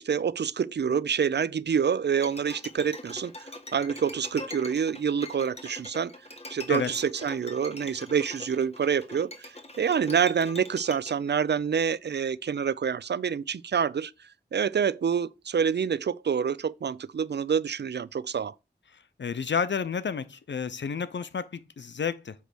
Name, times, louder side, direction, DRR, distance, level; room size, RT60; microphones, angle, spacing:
voice 1, 0.0-6.1 6.5-9.5 9.8-14.1 14.5-18.5, right 7 dB, 70° right, 0.4 m, -27 dB
Bowed string instrument, 2.2-11.1, left 2 dB, 35° left, 1.6 m, -43 dB
voice 2, 19.2-22.3, left 6 dB, 90° left, 0.6 m, -30 dB
8.2 x 3.2 x 6.0 m
wide cardioid pair, 45°, 18 cm